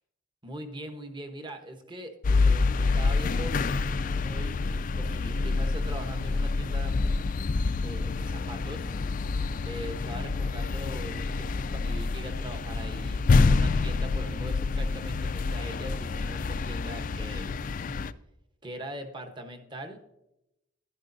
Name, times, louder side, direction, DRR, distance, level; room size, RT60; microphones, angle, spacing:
voice 1, 0.4-3.6 4.2-7.0 7.7-8.9 9.6-17.5 18.6-20.0, right 1 dB, 25° right, 6 dB, 1.0 m, -41 dB
sound 1, 2.2-18.1, left 3 dB, 40° left, 0.3 m, -27 dB
12.5 x 10.0 x 2.7 m, 0.89 s
head